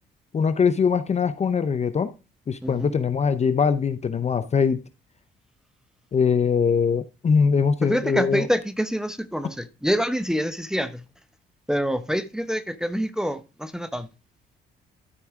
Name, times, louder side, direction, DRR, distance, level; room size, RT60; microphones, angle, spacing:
voice 1, 0.3-2.1 2.5-4.8 6.1-8.5, left 6 dB, 35° left, 0.6 m, -22 dB
voice 2, 7.8-11.0 11.7-14.1, equal, 5° right, 0.7 m, -26 dB
12.5 x 4.7 x 3.6 m
cardioid pair, 90°, 20 cm